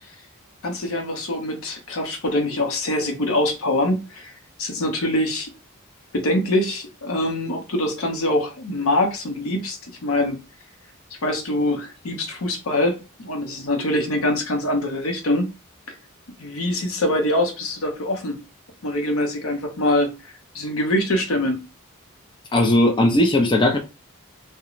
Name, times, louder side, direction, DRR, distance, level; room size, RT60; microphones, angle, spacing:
voice 1, 0.6-4.3 4.6-5.5 6.1-10.4 11.2-15.5 16.4-18.4 18.8-20.1 20.5-21.6, left 1 dB, 75° left, 0.7 m, -24 dB
voice 2, 22.5-23.8, left 1 dB, 20° left, 0.4 m, -17 dB
3.0 x 2.1 x 2.4 m
head